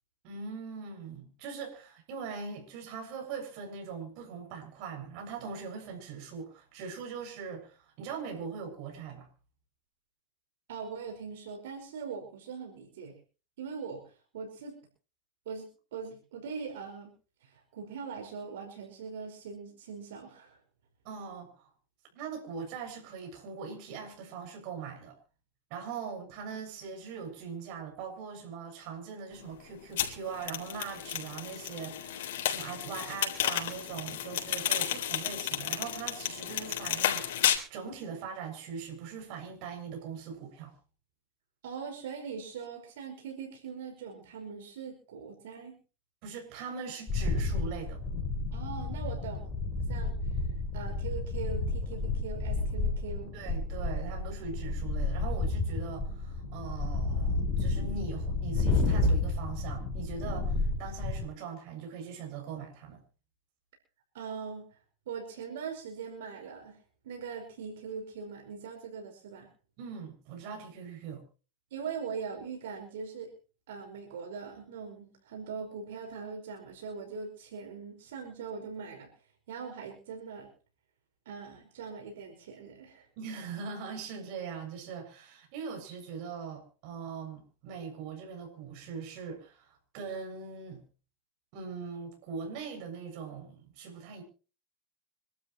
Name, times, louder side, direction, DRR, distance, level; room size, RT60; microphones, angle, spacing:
voice 1, 0.2-9.3 21.0-21.7 22.1-25.2 25.7-40.7 46.2-48.0 53.3-63.0 69.8-71.2 83.2-90.8 91.5-94.2, right 6 dB, 55° right, 3 dB, 7.2 m, -41 dB
voice 2, 10.7-13.1 13.6-14.0 14.3-14.8 15.5-17.1 17.4-20.6 41.6-45.8 48.5-49.5 49.9-50.2 50.7-53.4 64.1-64.8 65.1-66.8 67.0-69.5 71.7-73.3 73.7-79.1 79.5-80.5 81.3-83.1, right 5 dB, 80° right, 3 dB, 5.3 m, -41 dB
sound 1, 30.0-37.6, left 11 dB, 75° left, 3.8 m, -32 dB
sound 2, 47.1-61.2, left 3 dB, 20° left, 5.2 m, -31 dB
26.5 x 12.5 x 3.2 m, 0.36 s
supercardioid pair, 135°, 0 cm